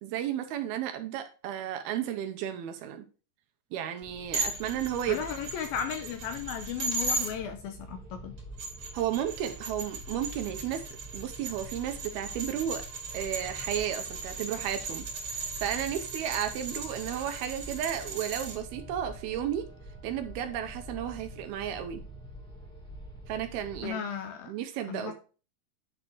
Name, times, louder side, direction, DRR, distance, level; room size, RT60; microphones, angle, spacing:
voice 1, 0.0-3.0 3.7-5.3 8.9-10.8 11.1-12.8 13.1-19.7 20.0-22.0 23.3-24.0 24.5-25.1, right 10 dB, 75° right, 7 dB, 2.5 m, -33 dB
sound 1, 4.0-23.9, right 1 dB, 5° left, 0.7 m, -46 dB
sound 2, 4.3-7.3 8.4-18.6, right 3 dB, 50° right, 3.3 m, -37 dB
voice 2, 5.1-8.4 23.8-24.5 24.9-25.1, left 8 dB, 80° left, 6 dB, 2.3 m, -35 dB
9.9 x 3.9 x 4.5 m, 0.36 s
omnidirectional pair, 4.8 m